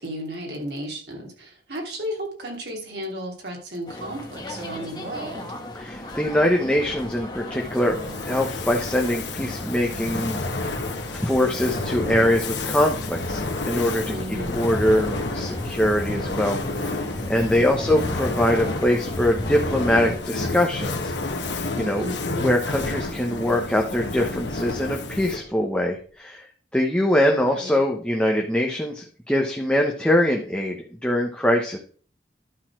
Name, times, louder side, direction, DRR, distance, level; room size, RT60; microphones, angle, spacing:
voice 1, 0.0-5.5 14.1-14.7 17.8-18.0 21.9-22.6 27.4-27.8, equal, 65° right, 0 dB, 2.9 m, -34 dB
sound 1, 3.9-20.2, left 1 dB, 25° left, 1.4 m, -35 dB
voice 2, 5.7-8.0 8.2-10.8 11.1-13.4 13.7-14.1 14.5-21.4 21.8-22.1 22.4-26.4 26.7-30.8 31.0-31.8, left 1 dB, 5° left, 1 dB, 1.0 m, -23 dB
Fire, 7.6-25.6, left 2 dB, 80° left, 1.3 m, -30 dB
11.5 x 4.1 x 6.0 m, 0.43 s
head